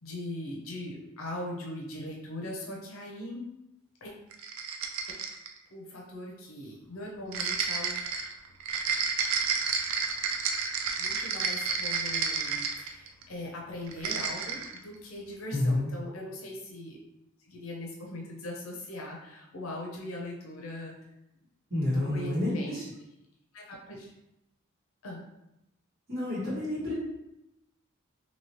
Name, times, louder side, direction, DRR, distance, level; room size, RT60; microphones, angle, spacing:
voice 1, 0.0-3.4 4.0-4.1 5.7-8.0 11.0-17.0 17.4-21.0 21.9-22.8 23.5-24.1 25.0-25.2, left 1 dB, 80° left, -1 dB, 0.6 m, -40 dB
sound 1, 4.3-5.6 7.3-13.2 13.9-14.8, right 5 dB, 75° right, 0.4 m, -31 dB
voice 2, 15.5-15.9 21.7-22.8 26.1-26.9, left 1 dB, 45° right, -10 dB, 1.5 m, -29 dB
3.0 x 2.7 x 2.9 m, 0.89 s
head